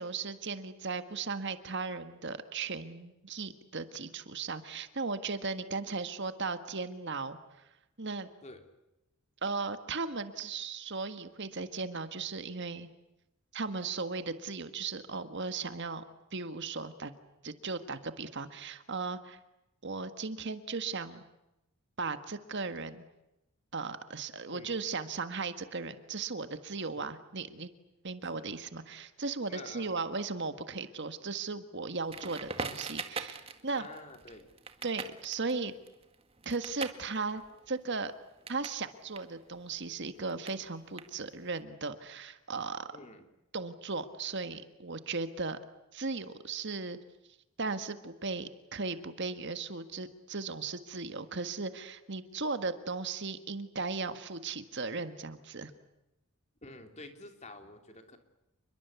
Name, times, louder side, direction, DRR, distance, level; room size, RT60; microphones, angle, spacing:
voice 1, 0.0-7.4 8.0-8.3 9.4-12.9 13.5-16.0 16.3-17.2 17.4-19.4 19.8-21.2 22.0-23.0 23.7-27.7 28.0-33.9 34.8-35.7 36.4-38.1 38.5-42.9 43.5-45.6 45.9-47.0 47.6-55.7, right 4 dB, 50° right, 10 dB, 1.6 m, -37 dB
voice 2, 29.5-30.1 33.7-34.4 42.9-43.2 56.6-58.2, left 2 dB, 30° left, 6 dB, 3.2 m, -49 dB
Crackle, 32.1-38.8 39.1-41.5, right 4 dB, 25° right, 1.9 m, -42 dB
29.5 x 22.5 x 8.3 m, 0.93 s
head